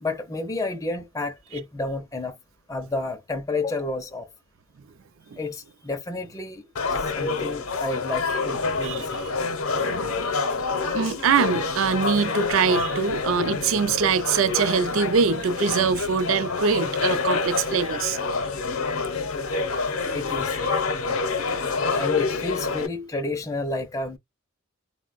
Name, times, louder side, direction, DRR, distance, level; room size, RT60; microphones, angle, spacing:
voice 1, 0.0-2.4 2.7-4.3 5.3-9.4 20.1-20.6 21.9-24.2, left 2 dB, 15° left, 0.4 m, -31 dB
sound 1, 6.8-22.9, left 4 dB, 70° left, 0.7 m, -27 dB
voice 2, 9.8-10.3 10.9-18.2, right 6 dB, 65° right, 0.4 m, -23 dB
3.7 x 2.1 x 2.4 m
head